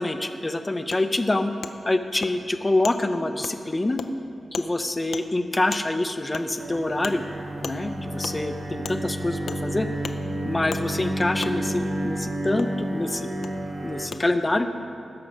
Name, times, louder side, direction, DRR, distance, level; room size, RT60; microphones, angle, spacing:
voice 1, 0.0-1.5 1.8-4.0 4.5-7.2 7.6-9.9 10.4-13.3 13.8-14.7, left 2 dB, 20° left, 8 dB, 0.6 m, -26 dB
Wood, 0.9-1.0 1.6-1.7 2.2-2.3 2.8-3.0 3.4-3.6 4.0-4.1 4.5-4.7 5.1-5.2 5.7-5.8 6.3-6.4 7.0-7.1 7.6-7.8 8.2-8.4 8.8-9.0 9.5-9.6 10.0-10.2 10.7-10.8 11.4-11.5 12.6-12.7 13.4-13.5 14.1-14.2, left 6 dB, 75° left, 0.5 m, -34 dB
sound 1, 6.6-14.1, right 1 dB, 65° right, 1.5 m, -31 dB
18.0 x 6.7 x 5.2 m, 2.8 s
wide cardioid pair, 145°, 0 cm